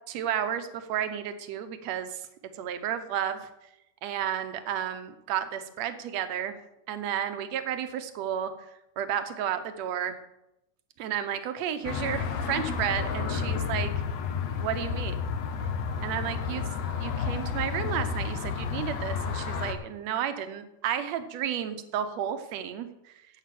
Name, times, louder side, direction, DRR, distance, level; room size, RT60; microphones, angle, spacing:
voice 1, 0.1-2.2 2.6-3.5 4.0-6.6 6.9-8.5 9.0-10.2 11.0-13.9 14.6-15.2 16.0-16.6 17.0-22.9, right 9 dB, 70° right, 9 dB, 2.1 m, -32 dB
sound 1, 11.8-19.7, left 6 dB, 70° left, 2.2 m, -31 dB
11.0 x 7.8 x 7.6 m, 0.89 s
omnidirectional pair, 3.3 m